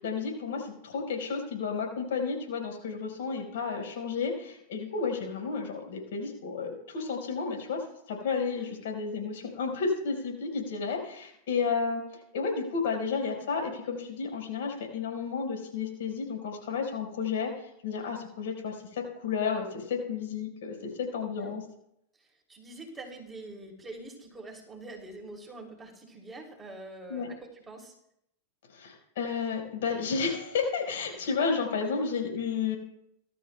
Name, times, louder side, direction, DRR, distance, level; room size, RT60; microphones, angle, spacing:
voice 1, 0.0-12.0 12.3-21.6 27.1-27.3 28.7-32.8, left 5 dB, 70° left, 2 dB, 4.6 m, -32 dB
voice 2, 22.2-27.9, right 2 dB, 15° right, 0 dB, 3.1 m, -45 dB
21.0 x 12.5 x 2.3 m, 0.76 s
hypercardioid pair, 100°, 0 cm